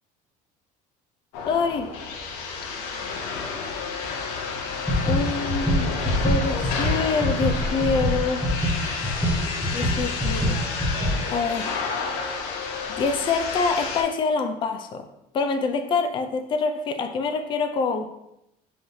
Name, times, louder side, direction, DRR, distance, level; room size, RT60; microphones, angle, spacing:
sound 1, 1.3-14.0, left 4 dB, 90° left, 0.7 m, -31 dB
voice 1, 1.5-1.9 5.1-8.4 9.7-10.6 11.3-11.7 13.0-15.0 15.3-18.1, left 4 dB, 30° left, 6 dB, 0.4 m, -26 dB
sound 2, 4.7-11.1, equal, ahead, 0.9 m, -24 dB
6.5 x 3.1 x 2.7 m, 0.85 s
cardioid pair, 155°, 17 cm